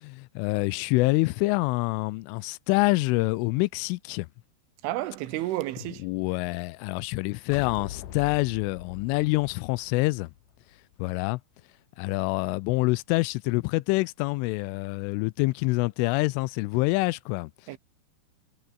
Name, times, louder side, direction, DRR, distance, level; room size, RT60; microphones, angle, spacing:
voice 1, 0.0-4.3 6.0-10.3 11.0-11.4 12.0-17.5, left 23 dB, 85° left, 3.1 m, -26 dB
voice 2, 4.8-6.1 17.7-17.8, right 16 dB, 80° right, 3.6 m, -31 dB
sound 1, 7.5-10.9, left 12 dB, 65° left, 2.3 m, -42 dB
omnidirectional pair, 5.7 m